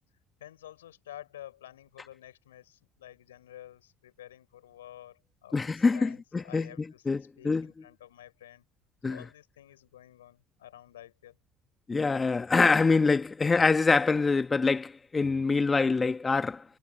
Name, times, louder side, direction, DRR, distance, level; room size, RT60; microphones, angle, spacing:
voice 1, 0.4-7.0 7.4-8.6 9.1-11.4, left 12 dB, 85° left, 5.5 m, -50 dB
voice 2, 5.5-7.7 9.0-9.2 11.9-16.6, left 4 dB, 25° left, 1.5 m, -25 dB
hypercardioid pair, 60°, 0 cm